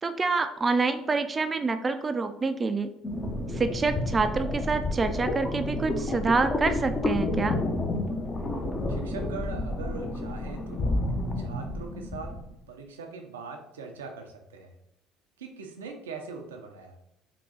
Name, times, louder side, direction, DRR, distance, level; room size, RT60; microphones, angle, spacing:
voice 1, 0.0-2.9 3.5-7.6, right 4 dB, 30° right, 9 dB, 0.3 m, -27 dB
sound 1, 3.0-12.5, left 2 dB, 30° left, 0.7 m, -30 dB
voice 2, 8.9-11.0 11.4-12.3 12.7-14.7 15.4-17.0, right 4 dB, 90° right, 3 dB, 0.5 m, -41 dB
3.6 x 2.3 x 3.8 m, 0.77 s
hypercardioid pair, 65°, 0 cm